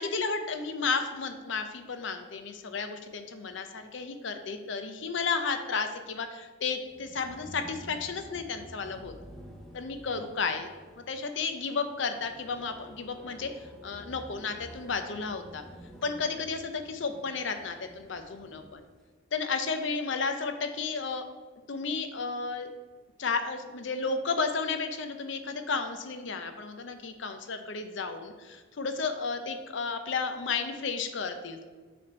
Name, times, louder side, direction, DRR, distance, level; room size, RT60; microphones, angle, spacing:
voice 1, 0.0-9.1 9.7-10.7 11.0-13.5 13.8-15.6 16.0-18.8 19.3-21.2 21.7-22.7 23.2-31.7, left 4 dB, 60° left, 7 dB, 0.6 m, -33 dB
sound 1, 6.8-18.8, equal, ahead, 0.7 m, -50 dB
6.9 x 3.4 x 5.3 m, 1.4 s
head